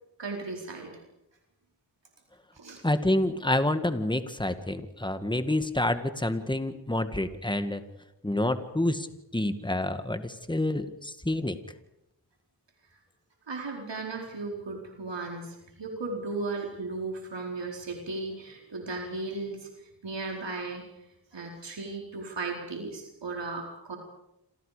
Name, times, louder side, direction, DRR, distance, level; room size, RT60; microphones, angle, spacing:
voice 1, 0.2-0.9 2.5-2.8 13.5-20.9 21.3-24.0, right 3 dB, 80° right, 1 dB, 4.6 m, -36 dB
voice 2, 2.8-7.8 8.2-9.1 9.3-11.6, left 1 dB, 10° left, 9 dB, 2.0 m, -28 dB
27.5 x 27.5 x 5.2 m, 0.84 s
wide cardioid pair, 75°, 43 cm